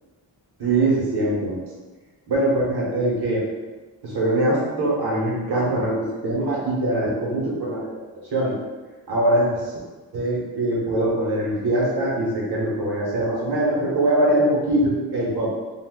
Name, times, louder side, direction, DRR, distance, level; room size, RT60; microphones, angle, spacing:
voice 1, 0.6-1.6 2.3-3.4 4.0-7.8 8.3-8.6 9.1-9.6 10.1-15.5, right 1 dB, 60° right, -6 dB, 1.1 m, -22 dB
2.5 x 2.5 x 3.6 m, 1.3 s
wide cardioid pair, 135°, 45 cm